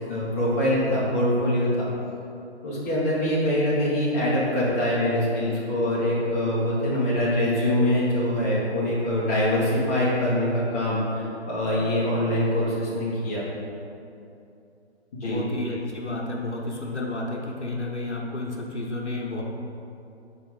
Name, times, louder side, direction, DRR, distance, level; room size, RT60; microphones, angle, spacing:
voice 1, 0.1-1.9 2.6-13.4 15.2-15.4, left 1 dB, 15° left, -8 dB, 0.7 m, -24 dB
voice 2, 15.2-19.4, left 2 dB, 85° left, -1 dB, 1.1 m, -31 dB
4.9 x 4.6 x 5.2 m, 2.7 s
figure-of-eight pair, 140°, 34 cm